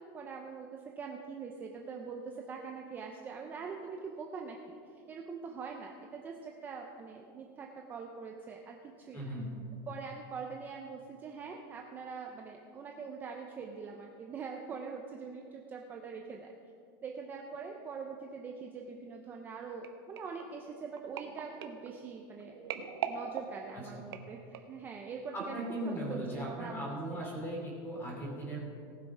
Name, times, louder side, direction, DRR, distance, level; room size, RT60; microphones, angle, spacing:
voice 1, 0.0-4.8 5.1-9.2 9.9-16.5 17.0-22.6 23.1-27.3, right 5 dB, 15° right, 2 dB, 0.5 m, -43 dB
voice 2, 9.1-9.5 23.7-23.9 25.3-28.6, right 1 dB, 15° left, -2 dB, 2.7 m, -38 dB
sound 1, 19.8-24.9 25.5-25.7 26.0-26.1, right 8 dB, 80° right, 1.1 m, -42 dB
18.5 x 6.2 x 4.9 m, 2.4 s
supercardioid pair, 175°, 12 cm